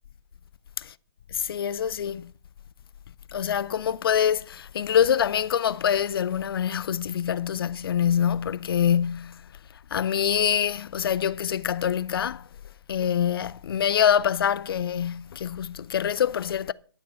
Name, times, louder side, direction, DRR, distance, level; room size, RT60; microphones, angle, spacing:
voice 1, 1.3-2.3 3.3-9.5 9.9-12.5 12.9-16.7, left 8 dB, 55° left, 0.5 m, -25 dB
11.5 x 6.8 x 5.5 m
hypercardioid pair, 145°, 14 cm